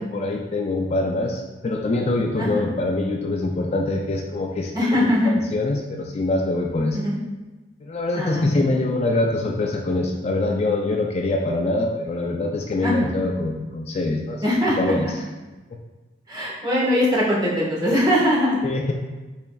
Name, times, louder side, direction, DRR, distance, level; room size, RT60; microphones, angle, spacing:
voice 1, 0.0-7.0 7.8-14.4 14.8-15.2 18.6-18.9, left 2 dB, 35° left, 1 dB, 0.4 m, -24 dB
voice 2, 4.7-5.3 6.9-7.1 8.1-8.6 12.8-13.1 14.4-14.9 16.3-18.6, left 1 dB, 25° right, -6 dB, 1.4 m, -21 dB
5.6 x 4.0 x 2.3 m, 1.2 s
head